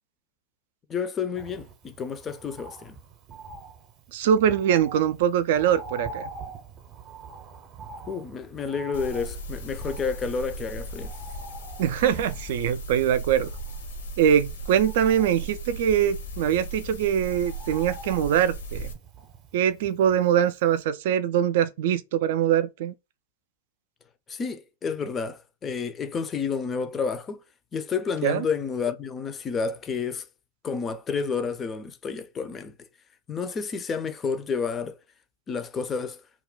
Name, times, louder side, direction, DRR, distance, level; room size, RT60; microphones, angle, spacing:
voice 1, 0.9-3.0 8.1-11.1 24.3-27.4 27.7-30.3 30.6-32.9 33.3-35.0 35.5-36.2, left 5 dB, 25° left, 0.4 m, -30 dB
Bird, 1.4-20.5 20.8-20.9, right 3 dB, 35° right, 0.7 m, -45 dB
voice 2, 4.1-6.3 11.8-13.5 14.2-18.9 19.5-22.9 28.2-28.4, right 9 dB, 60° right, 0.3 m, -23 dB
sound 1, 8.9-18.9, right 1 dB, 80° left, 0.8 m, -37 dB
2.3 x 2.2 x 3.6 m
hypercardioid pair, 110°, 0 cm